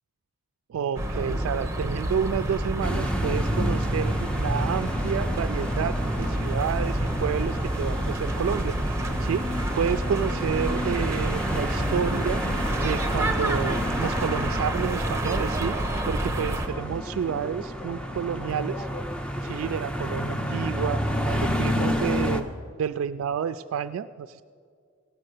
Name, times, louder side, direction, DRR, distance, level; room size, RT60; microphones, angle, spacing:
voice 1, 0.7-12.4 12.8-15.7 16.1-18.9 19.4-22.5 22.8-24.4, right 7 dB, 90° right, 10 dB, 0.3 m, -30 dB
sound 1, 1.0-16.7, right 1 dB, 15° right, 1.0 m, -29 dB
sound 2, 2.8-22.4, equal, 5° left, 0.6 m, -30 dB
16.5 x 6.5 x 7.7 m, 2.2 s
head